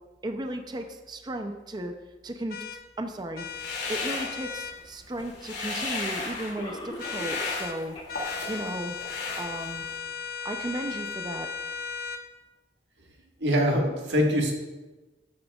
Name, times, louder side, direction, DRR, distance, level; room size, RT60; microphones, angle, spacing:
voice 1, 0.2-1.9 2.2-2.6 3.0-8.0 8.5-9.9 10.4-11.5, right 1 dB, 25° right, 5 dB, 0.5 m, -35 dB
sound 1, 2.5-2.8 3.4-4.8 7.0-7.8 8.1-12.2, left 6 dB, 55° left, 0.7 m, -36 dB
sound 2, 3.5-4.8 5.1-6.6 7.0-8.7 9.0-9.9, left 3 dB, 75° left, 2.6 m, -34 dB
Cough, 5.4-5.5 6.6-7.7 7.9-8.1 8.6-8.7 9.3-9.4, left 1 dB, 30° left, 1.6 m, -40 dB
voice 2, 13.4-14.5, equal, 80° right, 0 dB, 1.7 m, -23 dB
13.0 x 8.8 x 2.4 m, 1.2 s
head